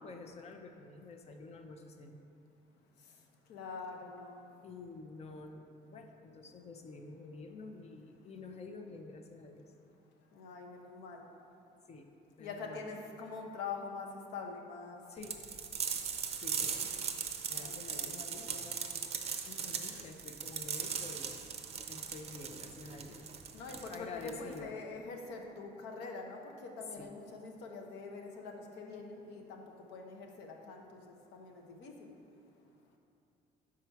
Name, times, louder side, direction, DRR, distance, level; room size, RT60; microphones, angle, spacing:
voice 1, 0.0-2.2 4.6-9.7 11.9-12.1 12.4-12.9 15.1-15.4 16.4-17.0 17.5-18.5 19.5-21.5 21.9-23.3 23.9-24.7 26.9-27.1, left 3 dB, 40° left, 5 dB, 0.6 m, -49 dB
voice 2, 3.5-4.4 10.3-11.2 12.4-15.0 16.6-16.9 17.5-18.9 23.5-29.6 29.9-31.9, left 4 dB, 85° left, 2 dB, 0.8 m, -45 dB
sound 1, 15.2-24.6, right 7 dB, 40° right, 0.5 m, -39 dB
5.6 x 4.9 x 4.5 m, 2.7 s
cardioid pair, 110°, 17 cm